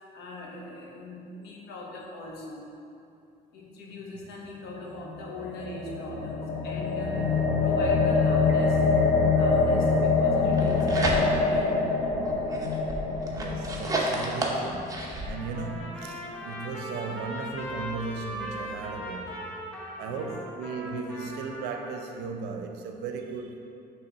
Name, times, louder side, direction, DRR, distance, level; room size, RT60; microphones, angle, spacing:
voice 1, 0.1-2.6 3.5-6.4 6.6-8.8 9.4-11.8 20.0-20.2, left 1 dB, 80° left, 1.2 m, -40 dB
sound 1, 5.0-15.1, left 4 dB, 45° left, 0.8 m, -25 dB
sound 2, 10.4-11.6 12.0-15.3, right 2 dB, 20° right, 0.8 m, -31 dB
voice 2, 13.3-19.5 20.0-23.6, right 4 dB, 80° right, 0.6 m, -36 dB
Trumpet, 15.1-21.9, equal, 5° left, 1.2 m, -39 dB
5.8 x 3.3 x 5.5 m
cardioid pair, 110°, 17 cm